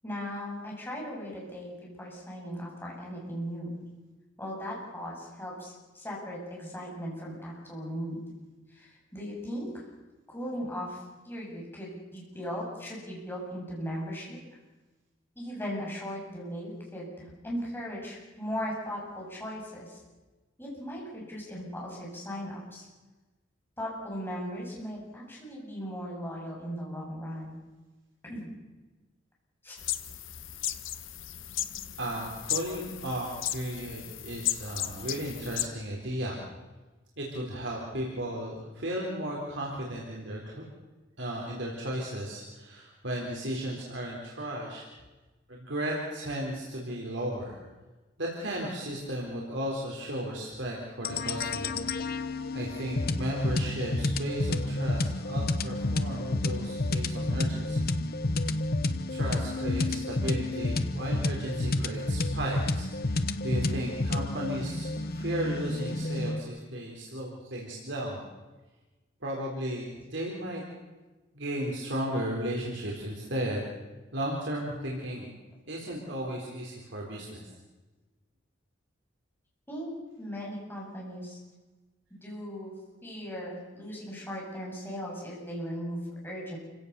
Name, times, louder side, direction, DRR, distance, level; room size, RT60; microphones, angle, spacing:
voice 1, 0.0-3.7 4.4-8.2 8.7-9.9 10.3-14.4 15.4-20.0 20.6-22.9 23.8-27.6 28.3-28.5 29.6-29.8 79.7-79.9 80.2-81.4 82.1-82.7 83.0-86.6, equal, 10° left, -4 dB, 7.5 m, -38 dB
sound 1, 29.8-35.7, left 12 dB, 85° left, 1.2 m, -35 dB
voice 2, 32.0-36.4 37.2-40.6 41.2-44.8 45.5-47.6 48.2-51.8 52.1-57.8 59.1-68.2 69.2-70.6 71.3-73.7 74.1-75.3 75.7-77.5, right 1 dB, 65° right, -2 dB, 4.1 m, -35 dB
sound 2, 51.0-66.4, left 2 dB, 55° left, 1.1 m, -30 dB
28.0 x 17.0 x 7.0 m, 1.2 s
head